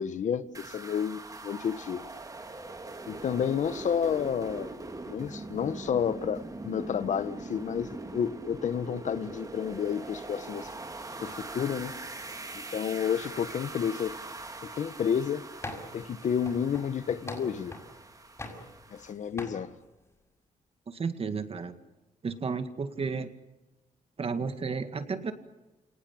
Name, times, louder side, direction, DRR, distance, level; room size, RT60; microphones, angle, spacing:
voice 1, 0.0-2.1 3.1-4.8 5.0-10.7 11.2-11.9 12.7-14.2 14.6-15.4 15.9-17.7 18.9-19.7, left 8 dB, 70° left, 1.3 m, -30 dB
sound 1, 0.5-19.1, right 2 dB, 25° right, 2.6 m, -42 dB
sound 2, 15.6-16.0 16.5-17.9 18.4-19.1 19.4-19.6, left 2 dB, 20° left, 6.4 m, -41 dB
voice 2, 20.9-21.7 22.2-23.3 24.2-25.3, right 5 dB, 50° right, 2.1 m, -32 dB
29.0 x 18.5 x 8.7 m
cardioid pair, 95°, 13 cm